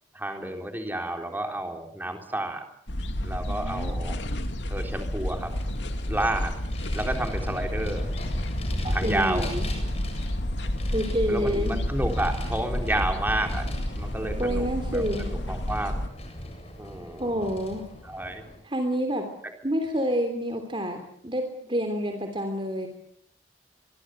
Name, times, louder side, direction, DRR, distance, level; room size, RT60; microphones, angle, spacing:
voice 1, 0.1-2.6 3.2-4.2 4.7-5.5 6.1-6.5 6.9-8.1 8.9-9.5 11.3-13.7 14.0-16.0 16.8-17.5 18.0-18.4, right 1 dB, 10° right, 4 dB, 3.9 m, -30 dB
sound 1, 2.9-16.1, left 1 dB, 70° left, 2.5 m, -30 dB
Vehicle, 5.3-18.6, left 1 dB, 35° left, 7.9 m, -38 dB
voice 2, 8.8-9.7 10.9-11.8 14.4-15.3 17.2-17.9 18.6-19.3 19.6-22.9, equal, 25° right, 6 dB, 3.2 m, -28 dB
25.0 x 23.5 x 7.9 m, 0.64 s
head